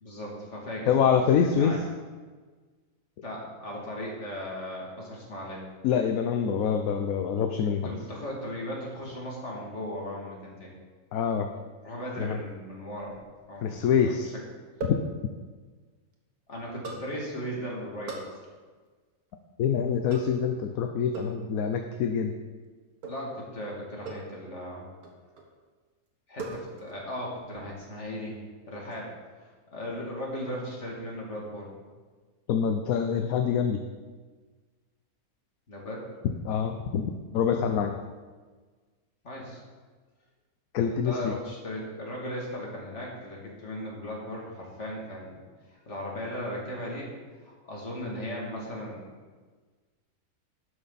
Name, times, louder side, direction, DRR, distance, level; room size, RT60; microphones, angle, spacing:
voice 1, 0.0-1.8 3.2-5.6 7.7-10.7 11.8-13.2 13.5-14.2 16.5-18.4 23.0-24.9 26.3-28.4 28.7-29.1 29.7-31.7 35.7-36.0 39.2-39.6 40.9-45.4 45.9-47.1 47.4-49.0, left 1 dB, 50° left, -3 dB, 2.9 m, -37 dB
voice 2, 0.9-1.8 5.8-7.9 11.1-11.5 12.2-12.4 13.6-14.3 14.8-15.0 19.6-22.3 32.5-33.8 36.4-37.9 40.7-41.3, left 7 dB, 70° left, 5 dB, 1.2 m, -25 dB
sound 1, 13.0-14.0 14.8-15.1 16.8-17.1 18.1-18.4 20.1-20.5 21.1-21.4 23.0-23.3 24.1-24.4 25.0-25.5 26.4-27.0 27.3-27.7, right 2 dB, 90° right, 1.9 m, -39 dB
12.0 x 10.0 x 4.2 m, 1.4 s
omnidirectional pair, 1.6 m